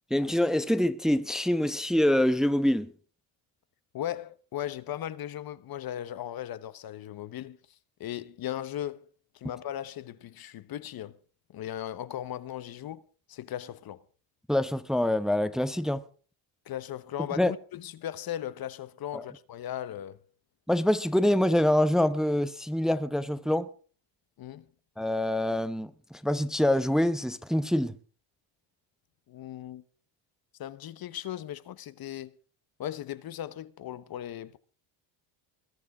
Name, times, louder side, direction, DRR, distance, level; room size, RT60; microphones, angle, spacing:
voice 1, 0.1-2.9 14.5-16.0 17.4-17.5 19.1-19.2 20.7-23.7 25.0-27.9, left 1 dB, ahead, 0.9 m, -25 dB
voice 2, 3.9-7.6 8.0-9.1 9.3-11.2 11.5-13.0 13.3-14.0 16.6-20.2 24.4-24.7 29.3-29.8 30.6-32.3 32.8-34.6, left 11 dB, 50° left, 1.0 m, -37 dB
21.0 x 12.0 x 4.9 m
cardioid pair, 105°, 46 cm